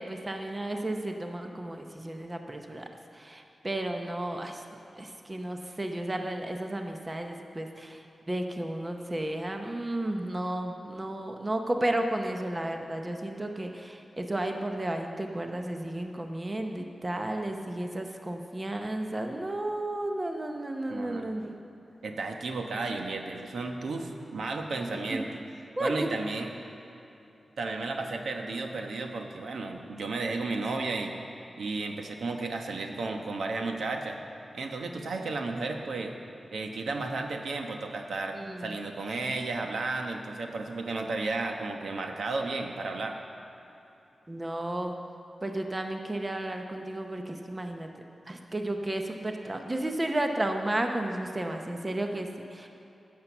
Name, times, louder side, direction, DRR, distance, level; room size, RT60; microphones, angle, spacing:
voice 1, 0.0-2.9 3.1-4.6 5.0-21.6 24.9-25.2 25.8-26.1 38.3-38.8 44.3-45.0 45.4-47.9 48.3-52.7, right 1 dB, 20° right, 4 dB, 0.7 m, -33 dB
voice 2, 20.9-21.3 22.0-25.3 25.8-26.5 27.6-31.2 31.6-34.2 34.5-36.1 36.5-43.2, right 3 dB, 85° right, 3 dB, 1.1 m, -33 dB
16.0 x 6.7 x 7.0 m, 3.0 s
wide cardioid pair, 175°, 0 cm